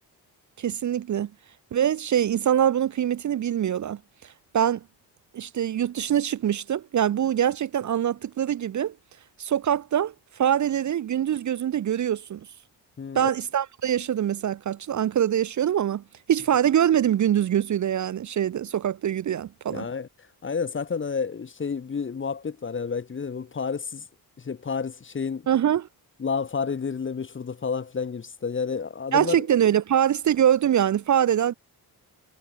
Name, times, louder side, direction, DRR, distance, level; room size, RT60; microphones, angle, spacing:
voice 1, 0.6-1.3 1.7-4.0 4.5-4.8 5.3-8.9 9.4-12.4 13.1-16.0 16.3-19.9 25.5-25.9 29.1-31.5, right 10 dB, 45° right, 0.5 m, -24 dB
voice 2, 13.0-13.3 19.7-20.1 20.4-24.0 24.4-25.5 26.2-29.5, left 5 dB, 30° left, 0.8 m, -30 dB
cardioid pair, 70°, 41 cm